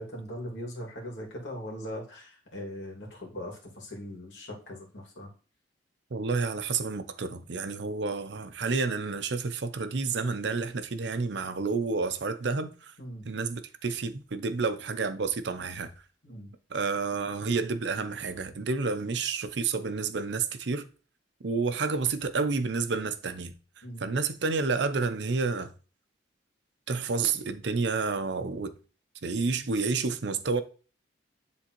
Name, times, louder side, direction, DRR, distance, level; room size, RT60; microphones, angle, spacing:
voice 1, 0.0-5.3 13.0-13.3 16.2-16.5 23.8-24.1, equal, 80° left, 2.3 m, -40 dB
voice 2, 6.1-12.9 13.3-15.9 16.7-20.8 21.4-23.5 24.0-25.7 26.9-28.7 29.2-30.6, right 4 dB, 70° right, 0.6 m, -30 dB
10.0 x 3.6 x 3.0 m
head